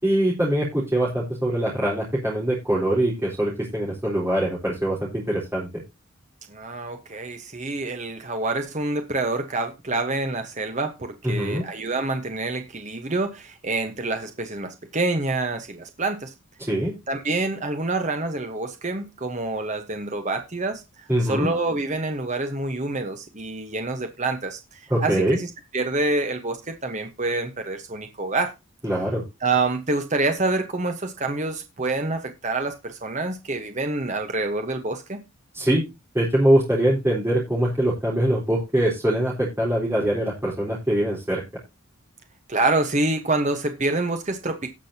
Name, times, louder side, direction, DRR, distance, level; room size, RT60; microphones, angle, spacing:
voice 1, 0.0-5.7 11.2-11.6 16.7-16.9 21.1-21.5 24.9-25.4 28.8-29.2 35.5-35.8 36.1-41.4, right 1 dB, 10° right, 4.0 m, -23 dB
voice 2, 6.5-16.3 17.1-28.5 29.4-35.2 42.5-44.7, right 2 dB, 35° right, 1.1 m, -27 dB
18.5 x 6.3 x 2.8 m
head